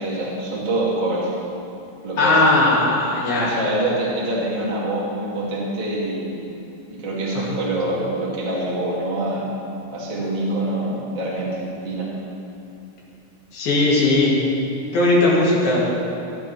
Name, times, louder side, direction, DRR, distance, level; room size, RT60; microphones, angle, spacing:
voice 1, 0.0-1.3 2.0-2.4 3.4-6.5 6.9-9.4 9.9-12.1, right 1 dB, 15° right, -7 dB, 1.6 m, -25 dB
voice 2, 2.2-3.6 7.4-7.6 13.5-14.3 14.9-15.9, left 2 dB, 80° left, -6 dB, 4.3 m, -18 dB
20.0 x 9.2 x 3.3 m, 2.8 s
omnidirectional pair, 4.2 m